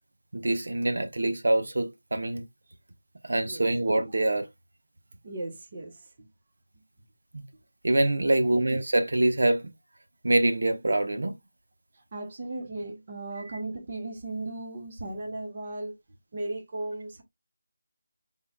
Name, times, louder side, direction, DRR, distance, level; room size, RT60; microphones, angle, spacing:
voice 1, 0.3-2.4 3.2-4.5 7.3-7.4 7.8-9.6 10.2-11.3 13.4-13.6, right 1 dB, 60° right, 0.8 m, -25 dB
voice 2, 5.2-5.9 8.4-8.6 12.1-16.0 16.3-17.2, right 2 dB, 25° right, 0.8 m, -36 dB
5.7 x 3.6 x 2.2 m
figure-of-eight pair, 180°, 0 cm